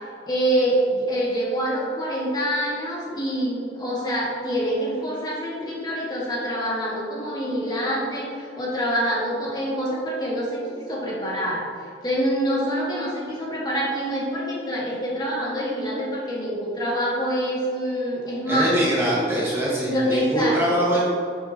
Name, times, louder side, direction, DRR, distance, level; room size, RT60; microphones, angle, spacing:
voice 1, 0.2-10.6 10.9-11.6 12.0-18.9 19.8-20.8, equal, 20° left, -5 dB, 1.9 m, -26 dB
voice 2, 18.5-21.1, equal, 15° right, -6 dB, 1.3 m, -23 dB
9.5 x 7.4 x 2.9 m, 2.4 s
head